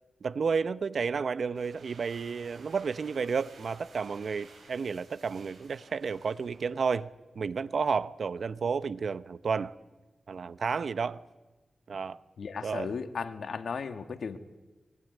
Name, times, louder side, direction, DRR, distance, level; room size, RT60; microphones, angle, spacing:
voice 1, 0.2-7.1 7.3-9.7 10.3-11.2 11.9-12.2 12.6-12.9, right 5 dB, 70° right, 0.8 m, -31 dB
sound 1, 1.4-7.1, right 3 dB, 85° right, 8.0 m, -55 dB
voice 2, 12.4-14.4, left 5 dB, 75° left, 1.8 m, -35 dB
24.0 x 22.0 x 9.4 m
cardioid pair, 60°, 0 cm